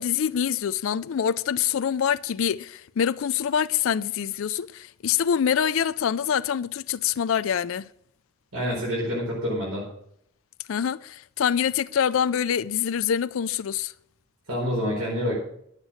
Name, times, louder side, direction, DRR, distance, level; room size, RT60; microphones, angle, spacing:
voice 1, 0.0-7.8 10.7-13.9, left 8 dB, 65° left, 0.4 m, -25 dB
voice 2, 8.5-9.8 14.5-15.4, equal, 80° right, 4.6 m, -27 dB
11.5 x 8.1 x 6.3 m
head